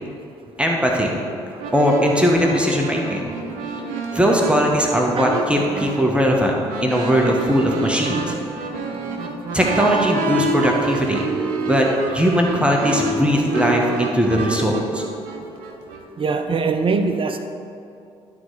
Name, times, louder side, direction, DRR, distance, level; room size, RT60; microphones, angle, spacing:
voice 1, 0.6-1.1 1.7-3.2 4.1-6.6 6.8-8.3 9.5-11.3 11.7-11.9 12.1-15.0, equal, 5° right, -1 dB, 1.4 m, -19 dB
sound 1, 1.6-16.0, right 3 dB, 70° right, 0.8 m, -28 dB
voice 2, 16.2-17.4, right 4 dB, 40° right, 7 dB, 0.7 m, -22 dB
11.5 x 4.1 x 4.8 m, 2.6 s
figure-of-eight pair, 45°, 14 cm